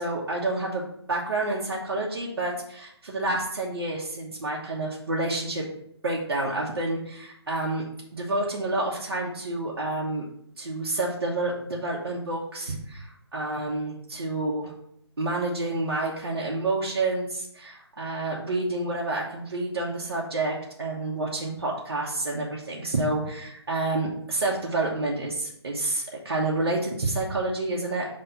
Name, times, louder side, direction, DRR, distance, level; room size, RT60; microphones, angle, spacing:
voice 1, 0.0-5.7 6.0-7.8 8.1-10.2 10.6-14.7 15.2-28.1, right 2 dB, 60° right, -4 dB, 1.1 m, -29 dB
5.6 x 3.3 x 5.6 m, 0.73 s
figure-of-eight pair, 145°, 14 cm